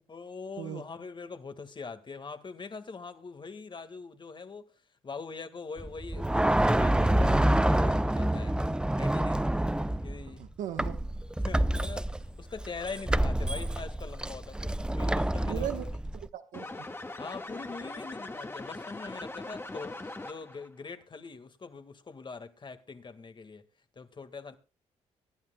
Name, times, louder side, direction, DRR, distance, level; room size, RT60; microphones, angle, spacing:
voice 1, 0.1-4.7 5.0-8.6 9.0-9.4 10.0-10.4 11.4-16.0 17.2-23.7 24.0-24.6, left 4 dB, 35° left, 1.8 m, -43 dB
sound 1, 5.8-10.3 10.8-16.3, right 1 dB, 5° right, 0.6 m, -27 dB
voice 2, 10.4-11.0 15.4-15.9 16.3-16.9, right 11 dB, 80° right, 1.3 m, -37 dB
sound 2, 16.5-20.7, left 2 dB, 20° left, 1.7 m, -41 dB
23.5 x 11.0 x 2.3 m
supercardioid pair, 70°, 13 cm